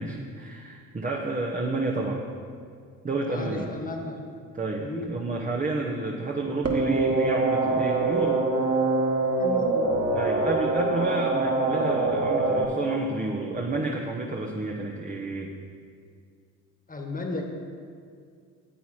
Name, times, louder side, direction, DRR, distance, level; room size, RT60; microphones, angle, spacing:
voice 1, 0.0-2.2 3.0-3.7 4.5-8.4 10.1-15.5, right 2 dB, 15° right, -1 dB, 0.9 m, -30 dB
voice 2, 3.3-4.2 4.8-5.1 9.4-9.9 16.9-17.4, left 2 dB, 20° left, 2 dB, 1.6 m, -34 dB
sound 1, 6.6-12.6, right 3 dB, 35° right, 1.8 m, -24 dB
9.3 x 8.2 x 4.4 m, 2.2 s
hypercardioid pair, 65°, 45 cm